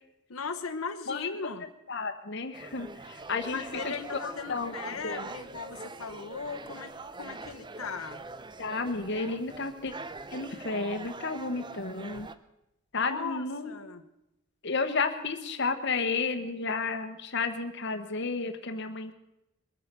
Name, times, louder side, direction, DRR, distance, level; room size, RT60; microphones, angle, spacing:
voice 1, 0.3-1.6 3.5-6.9 7.2-8.2 13.0-14.0, left 5 dB, 90° left, 6 dB, 1.1 m, -38 dB
voice 2, 1.9-3.9 4.5-5.2 8.6-9.9 10.3-12.3 12.9-13.7 14.6-19.1, left 4 dB, 55° left, 7 dB, 1.2 m, -32 dB
sound 1, 2.5-12.3, right 3 dB, 20° right, 0.6 m, -43 dB
21.5 x 9.1 x 6.8 m, 0.89 s
head